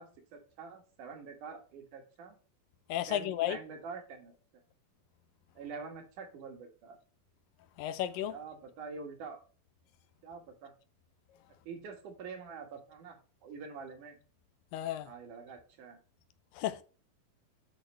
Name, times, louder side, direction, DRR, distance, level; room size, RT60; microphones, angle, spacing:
voice 1, 0.0-2.4 3.1-4.3 5.6-7.0 8.3-9.4 10.2-10.7 11.6-14.2 15.0-16.0, right 5 dB, 65° right, 3.0 m, -46 dB
voice 2, 2.9-3.6 7.8-8.4 14.7-15.1 16.5-16.8, left 12 dB, 80° left, 2.4 m, -33 dB
9.0 x 6.2 x 3.2 m
omnidirectional pair, 4.2 m